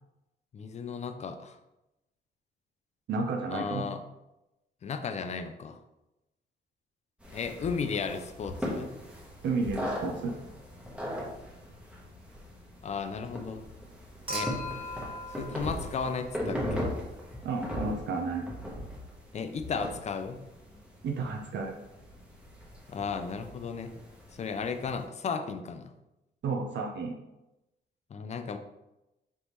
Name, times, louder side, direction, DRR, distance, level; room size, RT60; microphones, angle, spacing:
voice 1, 0.5-1.6 3.5-4.0 4.8-5.8 7.3-8.9 12.8-13.7 14.3-14.5 15.4-16.9 19.3-20.4 22.9-23.9 24.3-25.9 28.1-28.6, left 5 dB, 35° left, 8 dB, 0.4 m, -34 dB
voice 2, 3.1-3.9 9.4-10.3 17.4-18.4 21.0-21.7 26.4-27.1, right 4 dB, 70° right, 2 dB, 0.5 m, -31 dB
Creaking floor upstairs, 7.2-25.0, equal, 5° right, 0.9 m, -39 dB
Human group actions / Chink clink / Liquid, 14.3-16.7 18.2-18.3, left 1 dB, 25° right, 1.3 m, -39 dB
4.0 x 3.4 x 3.0 m, 0.95 s
cardioid pair, 115°, 19 cm